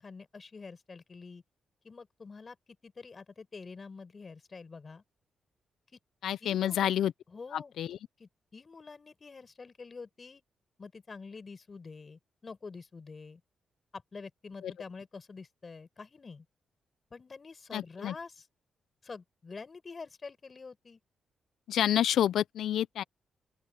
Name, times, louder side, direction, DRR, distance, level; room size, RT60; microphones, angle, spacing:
voice 1, 0.0-1.4 1.8-2.6 2.8-5.0 5.9-6.0 6.4-6.9 7.3-7.7 8.2-10.4 10.8-13.4 13.9-16.5 17.1-18.5 19.0-21.0, left 4 dB, 45° left, 5.6 m, -47 dB
voice 2, 6.2-7.1 7.5-8.0 14.6-14.7 17.7-18.1 21.7-23.0, left 11 dB, 75° left, 0.8 m, -29 dB
open air
supercardioid pair, 45°, 0 cm